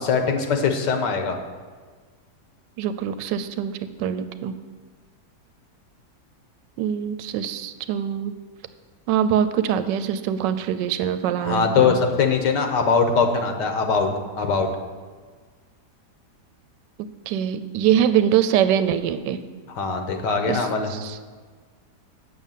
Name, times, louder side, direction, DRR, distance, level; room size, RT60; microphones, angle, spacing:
voice 1, 0.1-1.4 11.4-14.1 14.4-14.7 19.8-20.9, left 5 dB, 80° left, 5 dB, 1.7 m, -21 dB
voice 2, 2.8-4.6 6.8-8.4 9.1-12.0 17.3-19.4 20.4-21.2, right 9 dB, 90° right, 11 dB, 1.2 m, -23 dB
8.7 x 6.6 x 7.3 m, 1.5 s
omnidirectional pair, 1.8 m